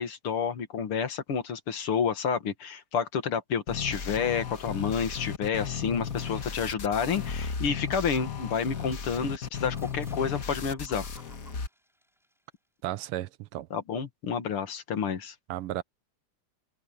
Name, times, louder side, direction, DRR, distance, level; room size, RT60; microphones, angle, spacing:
voice 1, 0.0-11.0 13.7-15.3, left 6 dB, 75° left, 2.7 m, -30 dB
sound 1, 3.7-11.7, left 6 dB, 40° left, 1.8 m, -35 dB
sound 2, 6.2-6.6 6.9-8.7 9.8-12.4, equal, ahead, 5.8 m, -57 dB
voice 2, 12.8-13.7 15.5-15.8, right 14 dB, 85° right, 1.7 m, -34 dB
omnidirectional pair, 2.4 m